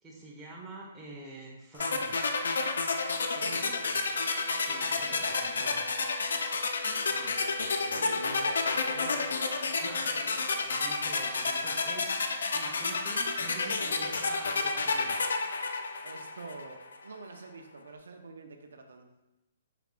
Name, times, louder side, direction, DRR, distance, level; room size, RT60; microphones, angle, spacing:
voice 1, 0.0-2.2 3.5-3.9 4.6-5.8 7.1-7.7 7.9-8.3 9.8-12.2 12.5-15.1, right 2 dB, 5° right, -5 dB, 1.0 m, -46 dB
sound 1, 1.8-16.7, left 4 dB, 80° left, 0.4 m, -30 dB
voice 2, 3.2-3.7 4.9-5.7 7.4-9.4 16.0-19.1, right 3 dB, 80° right, 4 dB, 0.5 m, -46 dB
sound 2, 4.0-9.3, left 4 dB, 55° left, 1.1 m, -46 dB
4.8 x 3.5 x 2.4 m, 0.98 s
hypercardioid pair, 150°, 0 cm